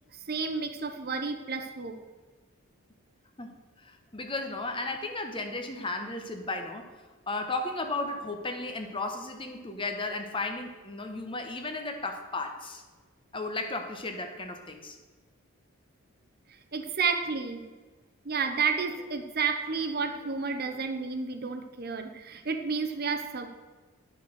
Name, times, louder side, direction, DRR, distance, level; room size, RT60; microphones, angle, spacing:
voice 1, 0.3-2.0 16.7-17.6 18.2-23.5, right 5 dB, 45° right, 7 dB, 0.8 m, -31 dB
voice 2, 3.4-6.9 7.3-12.8 13.3-15.0, left 2 dB, 25° left, 5 dB, 1.0 m, -34 dB
10.5 x 6.5 x 6.4 m, 1.3 s
head